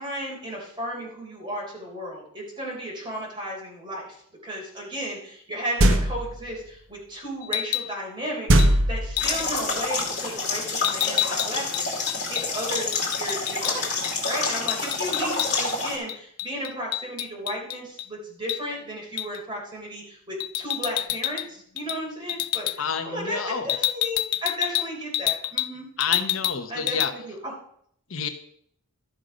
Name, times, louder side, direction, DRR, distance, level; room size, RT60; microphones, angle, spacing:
voice 1, 0.0-25.9 26.7-27.5, equal, 20° right, -2 dB, 3.6 m, -34 dB
sound 1, 5.8-6.4 8.5-9.5, right 1 dB, 60° right, 0.9 m, -19 dB
sound 2, 7.4-7.9 8.6-8.7 9.2-9.5 10.8-13.7 14.0-14.2 14.4-15.8 16.1-18.1 18.5-18.6 19.2-19.4 20.4-21.5 21.8-22.0 22.3-22.8 23.7-25.7 26.0-26.6 26.9-27.1, left 15 dB, 80° left, 0.4 m, -28 dB
sound 3, 9.2-16.0, left 3 dB, 35° left, 2.4 m, -28 dB
voice 2, 22.8-23.8 26.0-27.1 28.1-28.3, left 6 dB, 60° left, 7 dB, 0.9 m, -29 dB
13.0 x 6.3 x 5.2 m, 0.67 s
head